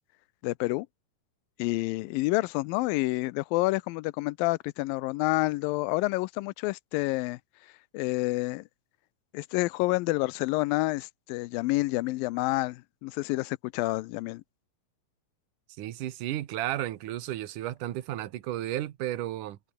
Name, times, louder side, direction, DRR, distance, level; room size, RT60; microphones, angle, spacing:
voice 1, 0.4-0.9 1.6-7.4 7.9-8.6 9.3-14.4, left 21 dB, 85° left, 2.4 m, -28 dB
voice 2, 15.8-19.6, right 13 dB, 70° right, 2.7 m, -33 dB
omnidirectional pair, 4.0 m